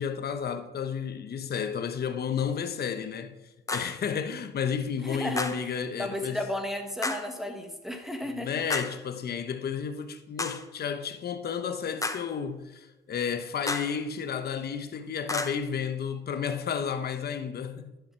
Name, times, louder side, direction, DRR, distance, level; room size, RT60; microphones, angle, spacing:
voice 1, 0.0-6.4 8.3-17.9, left 7 dB, 55° left, 1.0 m, -32 dB
sound 1, 3.7-4.0 5.4-5.7 7.0-7.4 8.7-9.1 10.4-10.7 12.0-12.4 13.7-14.0 15.3-15.5, left 2 dB, 15° left, 0.8 m, -32 dB
voice 2, 5.0-5.5 6.0-8.5, left 1 dB, ahead, 1.4 m, -33 dB
11.0 x 7.2 x 4.6 m
cardioid pair, 90°, 20 cm